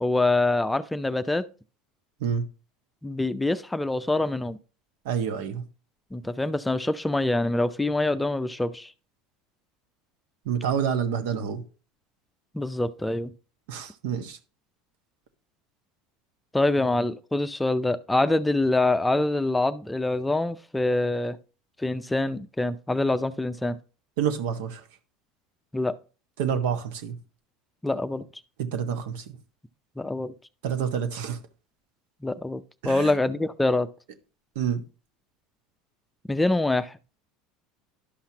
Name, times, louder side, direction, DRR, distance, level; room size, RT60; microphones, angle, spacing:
voice 1, 0.0-1.5 3.0-4.6 6.1-8.9 12.5-13.3 16.5-21.4 21.8-23.8 25.7-26.0 27.8-28.3 30.0-30.3 32.2-33.9 36.3-37.0, left 2 dB, 10° left, 0.5 m, -25 dB
voice 2, 5.0-5.6 10.4-11.6 13.7-14.4 24.2-24.8 26.4-27.1 28.6-29.4 30.6-31.4 32.8-33.1 34.5-34.8, right 8 dB, 75° right, 1.2 m, -28 dB
11.5 x 5.7 x 2.9 m
hypercardioid pair, 90°, 0 cm